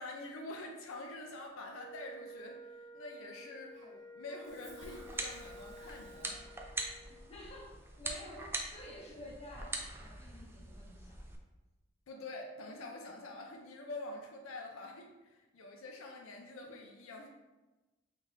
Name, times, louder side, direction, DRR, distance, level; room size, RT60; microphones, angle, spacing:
voice 1, 0.0-3.7 4.1-6.3 12.1-17.3, left 2 dB, 85° left, 2 dB, 0.5 m, -46 dB
Wind instrument woodwind instrument, 1.7-7.3, equal, 60° left, 0.9 m, -52 dB
Cough, 3.7-6.6, right 2 dB, 35° right, 1.0 m, -59 dB
sound 1, 4.8-11.4, right 2 dB, 10° right, 0.3 m, -43 dB
voice 2, 7.3-11.2, equal, 30° left, -4 dB, 0.9 m, -50 dB
3.7 x 3.6 x 2.6 m, 1.1 s
head